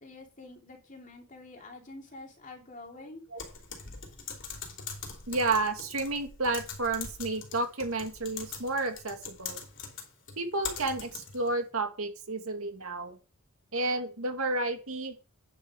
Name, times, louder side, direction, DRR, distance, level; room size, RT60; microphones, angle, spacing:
voice 1, 0.0-3.2, left 2 dB, 35° left, 1 dB, 2.8 m, -47 dB
Typing, 3.4-11.5, left 6 dB, 60° left, 3.1 m, -42 dB
voice 2, 5.3-9.6 10.4-13.2 13.7-15.2, right 2 dB, 80° right, 5 dB, 2.0 m, -31 dB
9.8 x 6.7 x 4.8 m, 0.33 s
head